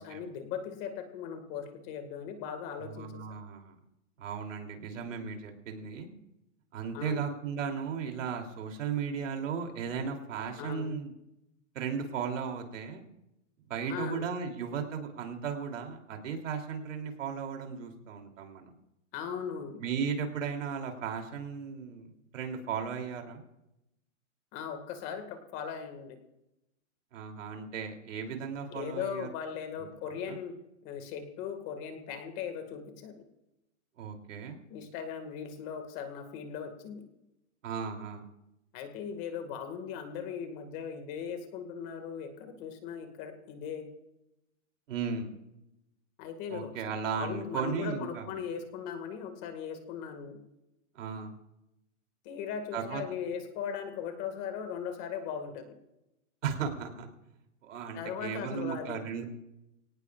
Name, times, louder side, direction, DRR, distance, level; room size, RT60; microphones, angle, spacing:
voice 1, 0.0-3.1 6.9-7.2 10.6-10.9 13.9-14.3 19.1-19.8 24.5-26.2 28.7-30.5 30.8-33.2 34.7-37.0 38.7-43.9 46.2-50.4 52.2-55.8 57.9-59.0, left 7 dB, 25° left, 7 dB, 1.9 m, -38 dB
voice 2, 2.8-3.7 4.2-6.1 6.7-11.1 11.7-13.1 13.7-18.7 19.8-23.4 27.1-29.3 29.8-29.9 30.3-30.4 34.0-34.6 37.6-38.2 44.9-45.3 46.5-48.4 50.9-51.3 52.7-53.2 56.4-57.1 57.6-59.2, right 6 dB, 70° right, 4 dB, 3.1 m, -36 dB
23.5 x 18.0 x 2.4 m, 0.90 s
supercardioid pair, 170°, 39 cm